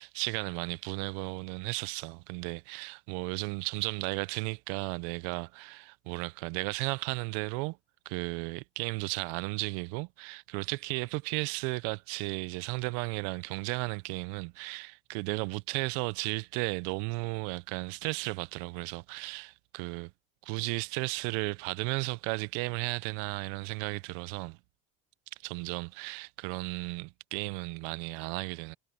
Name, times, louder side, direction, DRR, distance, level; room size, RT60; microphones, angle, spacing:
voice 1, 0.0-7.8 8.1-20.1 20.4-24.6 25.4-28.8, right 27 dB, 80° right, 0.5 m, -34 dB
cardioid pair, 155°, 21 cm